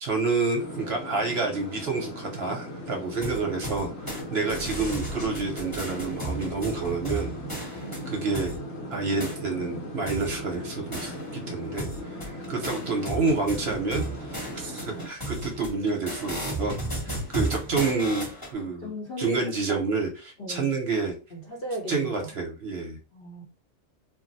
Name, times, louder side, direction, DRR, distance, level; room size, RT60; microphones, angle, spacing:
voice 1, 0.0-8.5 8.9-11.2 11.5-16.8 17.0-18.9 19.2-21.1 21.9-23.0, right 4 dB, 60° right, 1 dB, 0.8 m, -29 dB
sound 1, 0.6-15.1, equal, 80° left, 1.1 m, -38 dB
sound 2, 3.2-4.2 4.5-8.6 9.2-9.4 10.1-11.5 11.8-18.5, right 1 dB, 20° left, 0.9 m, -35 dB
voice 2, 7.8-8.2 18.6-19.4 19.7-19.8 20.4-20.8 21.3-22.3 23.1-23.4, equal, 50° left, -1 dB, 0.8 m, -37 dB
2.5 x 2.0 x 3.9 m, 0.34 s
omnidirectional pair, 1.4 m